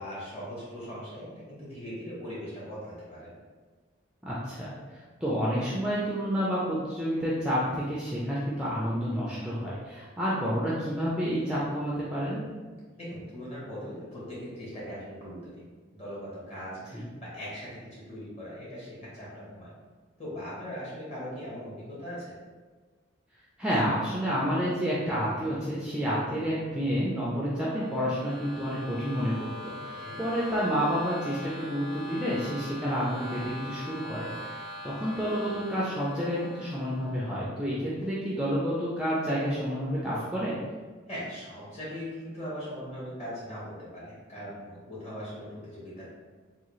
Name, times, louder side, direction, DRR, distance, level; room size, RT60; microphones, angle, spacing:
voice 1, 0.0-3.3 12.9-15.7 15.9-19.7 20.2-22.3 29.9-30.2 41.1-46.1, equal, 35° left, -8 dB, 1.4 m, -40 dB
voice 2, 4.2-12.4 16.9-17.0 23.6-40.6, equal, 5° right, -7 dB, 0.4 m, -29 dB
sound 1, 27.5-37.2, left 1 dB, 85° left, 0.9 m, -42 dB
3.7 x 2.3 x 3.0 m, 1.4 s
head